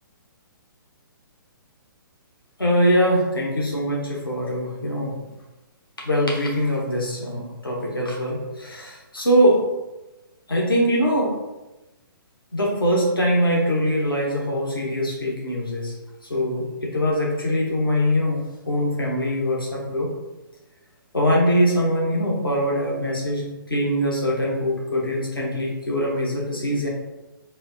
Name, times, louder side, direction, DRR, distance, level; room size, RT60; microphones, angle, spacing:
voice 1, 2.6-5.1 6.0-9.6 10.5-11.3 12.5-15.9 16.3-20.1 21.1-26.9, equal, 80° left, -3 dB, 1.1 m, -22 dB
4.1 x 2.7 x 2.6 m, 1.0 s
figure-of-eight pair, 125°, 12 cm